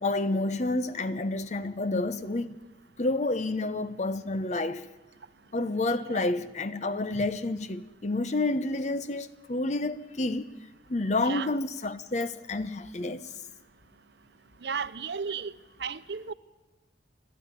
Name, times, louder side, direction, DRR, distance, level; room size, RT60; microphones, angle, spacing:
voice 1, 0.0-2.5 3.0-4.9 5.5-10.5 10.9-13.3, left 2 dB, 40° left, 0.8 m, -29 dB
voice 2, 14.6-15.5 15.8-16.3, right 6 dB, 75° right, 0.8 m, -34 dB
29.5 x 11.5 x 9.8 m
head